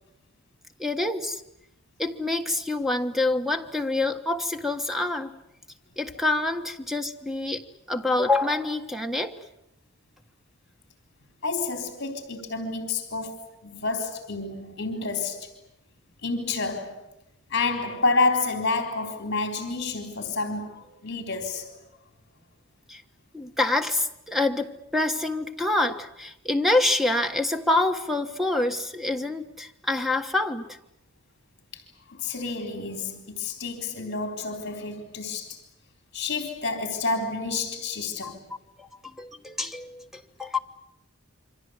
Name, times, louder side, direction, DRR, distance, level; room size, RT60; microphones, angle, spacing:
voice 1, 0.8-1.4 2.0-5.3 6.0-9.4 22.9-23.0 23.3-30.8 38.2-38.3 38.8-40.6, left 2 dB, ahead, 1.4 m, -26 dB
voice 2, 11.4-15.5 16.2-17.0 17.5-21.8 31.7-31.8 32.1-35.6 36.1-38.4, left 3 dB, 55° left, 3.7 m, -29 dB
28.0 x 24.5 x 8.0 m
head